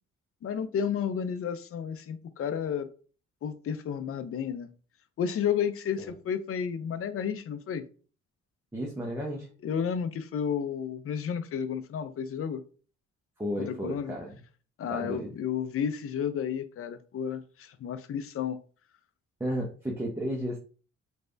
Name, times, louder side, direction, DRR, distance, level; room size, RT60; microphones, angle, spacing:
voice 1, 0.4-2.9 3.4-4.7 5.2-7.8 9.6-12.6 13.6-14.1 14.8-18.6, left 8 dB, 50° left, 11 dB, 0.5 m, -32 dB
voice 2, 8.7-9.5 13.4-14.4 14.9-15.3 19.4-20.6, equal, 10° right, -3 dB, 0.8 m, -33 dB
3.3 x 3.2 x 2.6 m, 0.39 s
cardioid pair, 90°, 30 cm